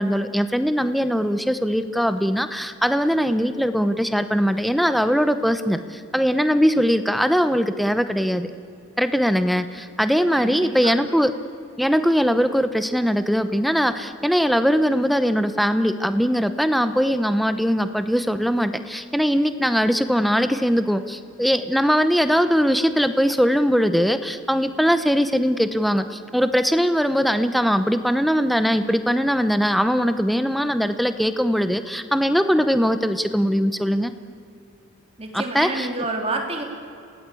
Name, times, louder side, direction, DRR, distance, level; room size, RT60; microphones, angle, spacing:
voice 1, 0.0-8.5 9.0-11.3 11.8-34.1 35.3-35.9, equal, ahead, 10 dB, 0.8 m, -21 dB
voice 2, 10.3-10.9 35.2-36.6, right 2 dB, 25° right, 2 dB, 3.2 m, -29 dB
28.5 x 18.5 x 8.5 m, 2.5 s
head